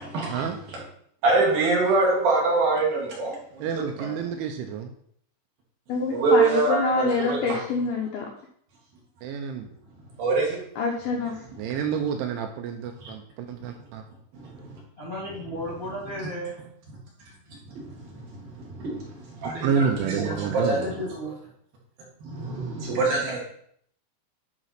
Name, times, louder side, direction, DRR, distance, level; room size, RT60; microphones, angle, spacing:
voice 1, 1.2-2.8 3.2-3.3 6.1-7.4 10.2-10.4 19.7-19.9 20.2-20.6 23.0-23.4, right 3 dB, 55° right, -3 dB, 3.4 m, -22 dB
voice 2, 3.6-4.9 9.2-9.7 11.6-14.0 19.6-20.9, right 7 dB, 80° right, 5 dB, 2.9 m, -29 dB
voice 3, 5.9-8.3 10.8-11.4, left 3 dB, 80° left, 0 dB, 2.2 m, -26 dB
voice 4, 15.0-16.6 20.5-21.3, equal, 30° left, -6 dB, 1.5 m, -34 dB
11.0 x 4.2 x 5.8 m, 0.65 s
omnidirectional pair, 5.8 m